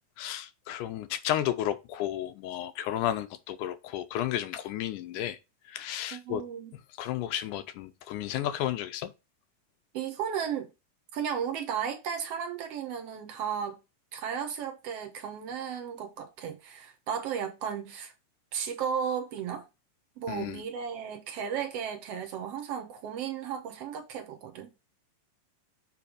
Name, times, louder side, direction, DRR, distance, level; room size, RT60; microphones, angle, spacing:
voice 1, 0.2-5.4 5.7-6.4 7.0-9.1 20.3-20.6, left 12 dB, 80° left, 2.0 m, -32 dB
voice 2, 6.1-6.7 9.9-10.7 11.1-13.8 14.1-18.1 18.5-19.7 20.2-24.7, right 8 dB, 65° right, 1.6 m, -34 dB
7.0 x 3.4 x 4.9 m
omnidirectional pair, 3.8 m